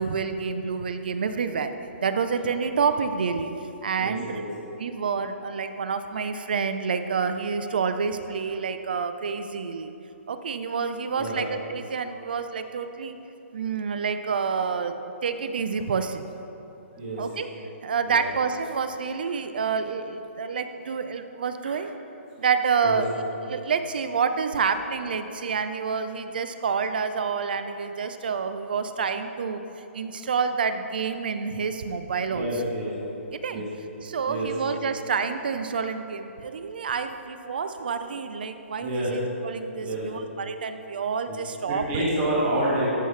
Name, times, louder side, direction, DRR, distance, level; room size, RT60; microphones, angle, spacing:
voice 1, 0.0-1.7 2.0-3.5 3.8-4.4 4.8-9.9 10.3-13.2 13.5-16.3 17.2-17.5 17.8-21.9 22.4-23.1 23.5-29.6 29.9-32.5 33.3-33.6 34.0-42.0, right 5 dB, 45° right, 9 dB, 0.4 m, -28 dB
voice 2, 4.0-4.5 11.2-11.4 17.0-17.2 18.0-18.2 22.8-23.0 32.3-32.9 33.5-33.6 34.2-34.5 38.8-39.1 39.8-40.0 41.3-41.4 41.7-42.9, right 1 dB, 15° right, -7 dB, 1.5 m, -28 dB
14.0 x 5.6 x 3.2 m, 2.9 s
hypercardioid pair, 180°, 7 cm